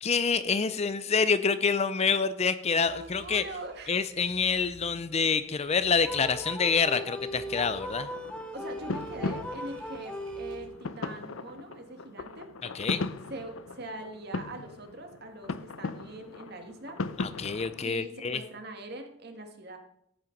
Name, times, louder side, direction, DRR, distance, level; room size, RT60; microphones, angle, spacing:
voice 1, 0.0-3.4 3.9-8.1 12.7-13.1 17.2-18.4, left 5 dB, 30° left, 13 dB, 0.5 m, -27 dB
voice 2, 2.7-4.0 8.5-12.5 13.3-17.0 17.8-19.8, right 1 dB, 50° right, 5 dB, 1.9 m, -42 dB
sound 1, 2.8-10.7, right 1 dB, 70° right, 2.8 m, -54 dB
sound 2, 6.0-10.9, equal, 5° left, 0.8 m, -39 dB
sound 3, 8.0-17.8, left 3 dB, 75° left, 0.6 m, -38 dB
14.0 x 8.6 x 5.3 m, 0.76 s
head